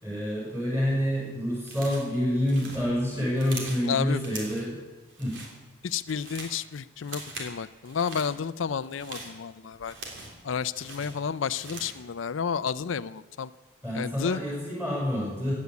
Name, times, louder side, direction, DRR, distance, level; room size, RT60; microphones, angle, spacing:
voice 1, 0.0-4.8 5.2-5.4 13.8-15.5, equal, 15° right, -3 dB, 6.8 m, -28 dB
sound 1, 1.6-2.1 2.4-3.9 4.2-4.7 5.1-5.5 5.9-6.6 7.0-7.5 7.8-8.3 8.8-10.4 10.7-12.0, right 3 dB, 80° right, 3.5 m, -41 dB
voice 2, 3.9-4.2 5.8-9.9 10.4-13.5 13.9-14.4, left 6 dB, 90° left, 14 dB, 0.5 m, -31 dB
16.5 x 9.6 x 8.4 m, 1.3 s
head